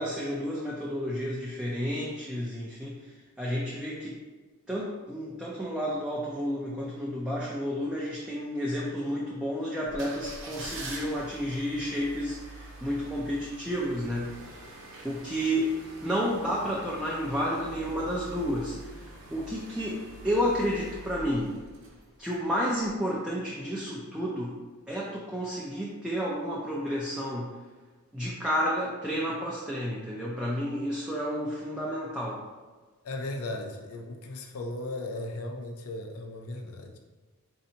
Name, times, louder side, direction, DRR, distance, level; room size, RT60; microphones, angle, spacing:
voice 1, 0.0-3.1 3.4-4.2 4.7-14.3 15.0-15.8 16.0-21.6 22.2-24.6 24.9-27.5 28.1-32.4, equal, 5° right, -5 dB, 0.3 m, -31 dB
sound 1, 9.9-22.3 22.8-22.9, right 2 dB, 60° right, 0.7 m, -45 dB
voice 2, 33.0-37.0, left 2 dB, 70° left, 3 dB, 0.5 m, -36 dB
4.1 x 2.8 x 2.7 m, 1.3 s
head